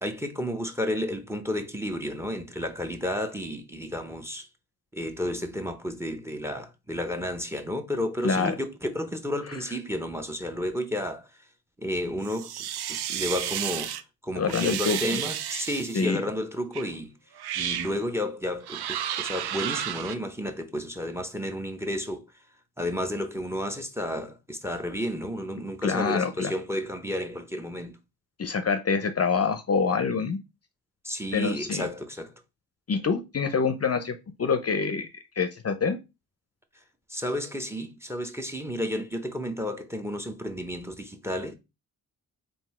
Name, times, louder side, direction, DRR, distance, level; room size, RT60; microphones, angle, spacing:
voice 1, 0.0-4.5 4.9-11.3 11.8-13.9 14.2-17.1 17.5-22.3 22.8-28.0 31.0-32.3 37.1-41.5, left 1 dB, 5° right, 0.7 m, -32 dB
voice 2, 8.2-8.6 14.4-15.0 15.9-16.2 25.8-26.5 28.4-30.4 31.3-31.9 32.9-35.1 35.4-36.0, left 5 dB, 40° left, 0.6 m, -26 dB
sound 1, 12.2-14.0 14.5-16.0 16.7-16.9 17.4-17.9 18.6-20.1, right 10 dB, 80° right, 0.5 m, -32 dB
3.8 x 2.6 x 4.2 m
cardioid pair, 70°, 38 cm